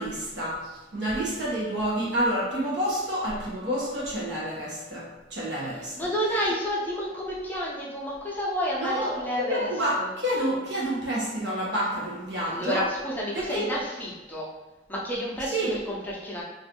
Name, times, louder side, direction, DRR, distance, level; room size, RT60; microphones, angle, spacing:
voice 1, 0.0-6.1 8.8-12.8 13.3-13.7 15.5-15.8, equal, 80° right, -6 dB, 1.2 m, -29 dB
voice 2, 6.0-9.7 10.0-10.1 12.4-14.5 14.9-16.4, equal, 10° left, -4 dB, 0.6 m, -30 dB
3.0 x 2.6 x 3.0 m, 1.1 s
head